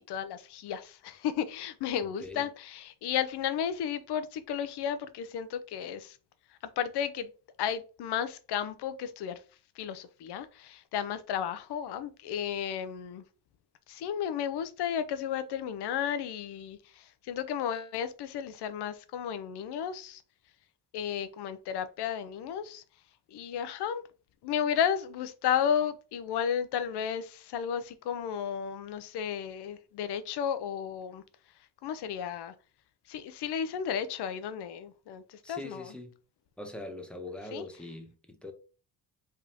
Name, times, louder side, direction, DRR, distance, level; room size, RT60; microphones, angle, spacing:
voice 1, 0.0-6.2 6.8-7.3 7.6-9.4 9.8-13.2 13.9-20.2 20.9-22.8 23.3-24.0 24.4-31.2 31.8-32.5 33.1-35.9 37.5-37.6, left 8 dB, 80° left, 0.7 m, -33 dB
voice 2, 35.4-36.1 36.6-38.5, left 1 dB, 5° left, 0.8 m, -42 dB
4.8 x 3.6 x 2.9 m
cardioid pair, 135°, 40 cm